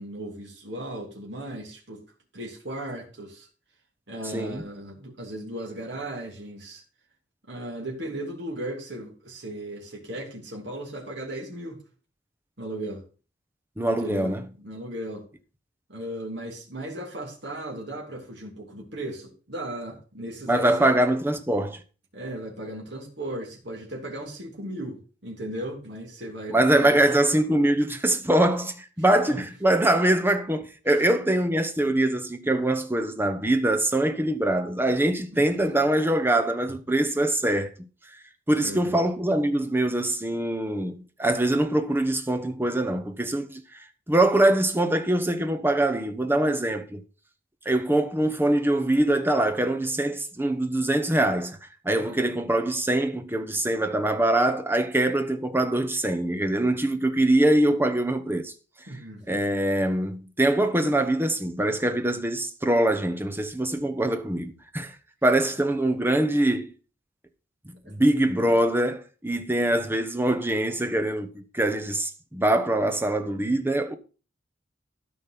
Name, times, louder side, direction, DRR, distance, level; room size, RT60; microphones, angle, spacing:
voice 1, 0.0-2.0 2.3-3.5 4.1-6.8 7.5-11.8 12.6-13.0 14.0-15.3 15.9-20.9 22.1-27.2 29.2-29.4 30.9-31.0 35.3-35.4 38.6-38.9 52.0-52.2 58.9-59.5 67.8-67.9, right 1 dB, 65° right, 2.9 m, -36 dB
voice 2, 4.3-4.6 13.8-14.5 20.5-21.8 26.5-37.7 38.5-47.0 47.6-51.6 51.8-58.5 59.3-64.9 65.2-66.7 67.9-73.9, right 1 dB, 10° right, 1.0 m, -23 dB
13.0 x 5.3 x 6.0 m
head